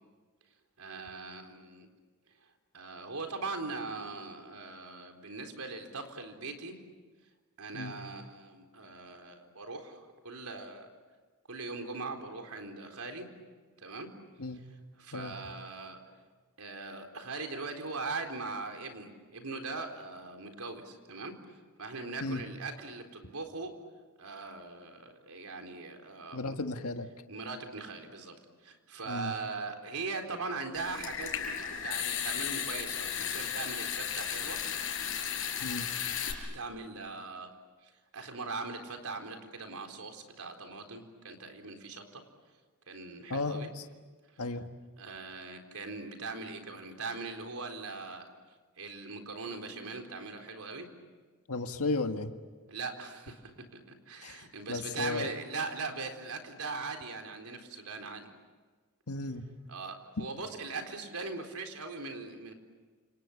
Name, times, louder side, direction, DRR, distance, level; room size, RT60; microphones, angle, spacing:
voice 1, 0.8-1.9 2.7-6.7 7.6-10.9 11.5-13.3 13.8-14.1 15.0-16.0 16.6-21.3 21.8-23.8 24.2-26.6 27.3-28.4 28.6-31.3 31.8-34.6 36.2-37.5 37.8-42.2 42.9-43.7 45.0-48.3 48.8-50.9 52.7-53.8 54.1-58.3 59.7-62.5, right 3 dB, 85° right, 5 dB, 4.1 m, -40 dB
voice 2, 26.3-27.1 29.1-29.3 35.6-35.8 43.3-43.8 44.4-44.6 51.5-52.3 54.2-54.4 54.7-55.3 59.1-59.4, left 3 dB, 85° left, 6 dB, 1.7 m, -34 dB
Water tap faucet / Sink (filling or washing) / Trickle dribble, 30.7-36.3, left 9 dB, 60° left, 5.1 m, -35 dB
29.5 x 28.0 x 7.3 m, 1.4 s
head